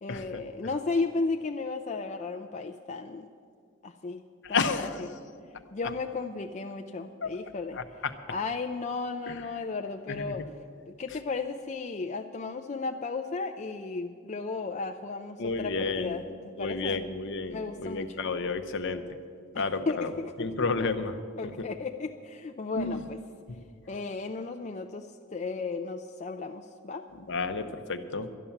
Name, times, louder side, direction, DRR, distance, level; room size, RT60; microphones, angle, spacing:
voice 1, 0.0-3.3 3.8-4.2 4.5-5.2 5.7-7.8 8.3-10.5 10.9-17.0 17.5-18.2 19.5-20.7 21.4-23.2 23.9-27.1, left 4 dB, 35° left, 5 dB, 0.4 m, -34 dB
voice 2, 4.5-4.9 7.2-7.3 10.1-10.2 15.4-16.2 16.6-19.0 19.6-20.1 20.4-21.1 22.8-23.0 27.3-28.3, left 4 dB, 55° left, 9 dB, 0.8 m, -30 dB
12.0 x 11.0 x 7.1 m, 2.2 s
head